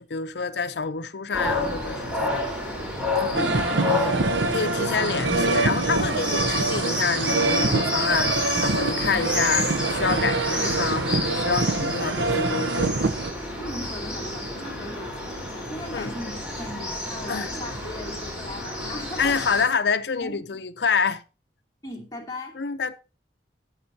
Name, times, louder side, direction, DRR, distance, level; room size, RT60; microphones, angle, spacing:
voice 1, 0.1-2.5 3.1-3.4 3.9-13.0 15.9-16.1 17.3-17.5 19.2-21.2 22.6-22.9, left 5 dB, 70° left, 0.6 m, -27 dB
sound 1, 1.3-19.7, left 1 dB, 5° right, 3.8 m, -30 dB
voice 2, 3.3-3.7 9.0-9.3 13.6-19.7 20.2-20.4 21.8-22.6, left 1 dB, 20° left, 2.5 m, -37 dB
sound 2, 3.3-13.3, right 3 dB, 85° right, 0.7 m, -25 dB
13.0 x 8.7 x 2.7 m
head